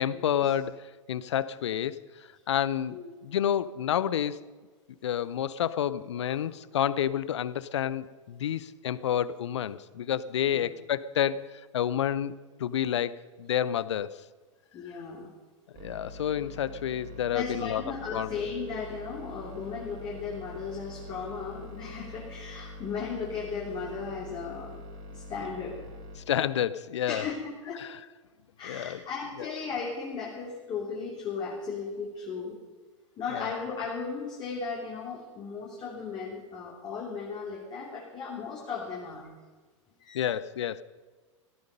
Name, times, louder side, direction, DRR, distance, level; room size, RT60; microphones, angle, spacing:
voice 1, 0.0-4.4 5.0-12.3 12.6-14.2 15.8-17.8 18.1-18.3 26.2-27.3 27.8-28.0 28.6-29.0 29.4-29.5 33.3-33.6 40.1-40.8, left 10 dB, 60° left, 18 dB, 0.7 m, -29 dB
voice 2, 14.7-15.3 17.3-24.8 25.1-25.8 27.1-27.8 28.6-32.6 33.2-39.3 40.0-40.3, left 5 dB, 25° left, -3 dB, 3.1 m, -36 dB
sound 1, 15.7-26.2, left 1 dB, 40° right, 3.7 m, -44 dB
17.0 x 14.5 x 5.3 m, 1.4 s
figure-of-eight pair, 95°, 17 cm